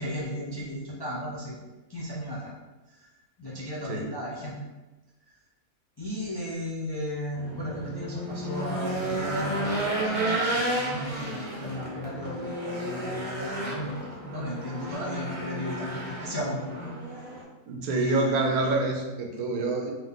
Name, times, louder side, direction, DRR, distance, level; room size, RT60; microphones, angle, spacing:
voice 1, 0.0-1.6 1.9-2.5 2.9-3.1 3.4-4.6 6.0-10.3 10.5-16.8 17.9-18.6, left 1 dB, 40° left, -6 dB, 0.3 m, -35 dB
Race car auto racing / Engine, 7.3-17.4, right 1 dB, 30° right, 0.8 m, -32 dB
voice 2, 17.7-19.9, right 3 dB, 90° right, 2 dB, 1.2 m, -27 dB
3.9 x 2.8 x 3.6 m, 1.1 s
omnidirectional pair, 1.5 m